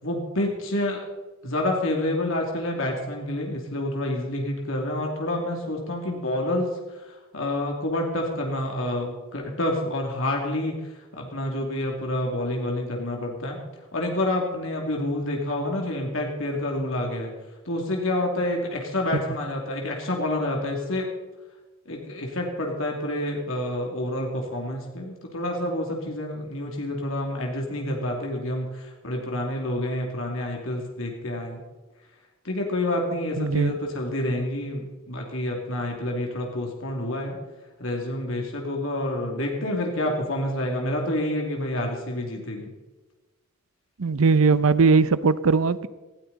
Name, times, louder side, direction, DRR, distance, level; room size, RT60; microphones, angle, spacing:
voice 1, 0.0-1.0 1.4-6.7 6.9-7.0 7.3-10.7 11.1-13.6 13.9-17.3 17.7-21.1 21.9-31.6 32.4-37.4 37.8-42.7, left 1 dB, 75° left, 1 dB, 2.6 m, -28 dB
voice 2, 33.4-33.8 44.0-45.9, right 4 dB, 90° right, 16 dB, 0.7 m, -19 dB
18.5 x 13.0 x 4.1 m, 1.2 s
head